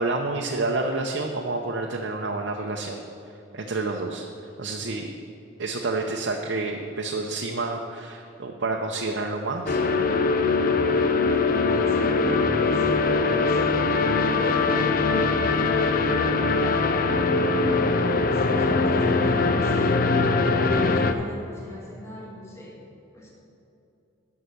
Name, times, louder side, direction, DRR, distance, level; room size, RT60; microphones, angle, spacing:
voice 1, 0.0-3.0 3.5-4.3 4.6-5.1 5.6-9.8, right 3 dB, 60° right, 1 dB, 0.7 m, -29 dB
sound 1, 9.7-21.1, left 3 dB, 45° left, 0.6 m, -22 dB
voice 2, 11.7-12.9 13.3-13.8 14.2-14.9 15.3-16.5 17.4-20.3 20.7-22.8 23.1-23.3, left 1 dB, 15° left, -5 dB, 1.8 m, -40 dB
12.5 x 5.8 x 6.6 m, 2.8 s
head